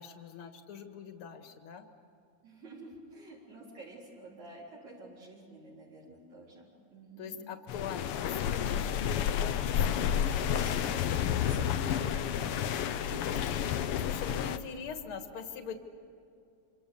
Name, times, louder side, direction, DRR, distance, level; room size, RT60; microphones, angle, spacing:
voice 1, 0.0-1.8 7.2-10.7 13.0-13.5 14.0-15.8, left 6 dB, 50° left, 6 dB, 2.3 m, -43 dB
voice 2, 2.4-7.4 10.4-12.6 13.0-13.3, right 1 dB, 65° right, -5 dB, 5.2 m, -49 dB
sound 1, 7.7-14.6, left 9 dB, 80° left, 1.3 m, -30 dB
27.5 x 25.5 x 7.0 m, 2.5 s
omnidirectional pair, 3.6 m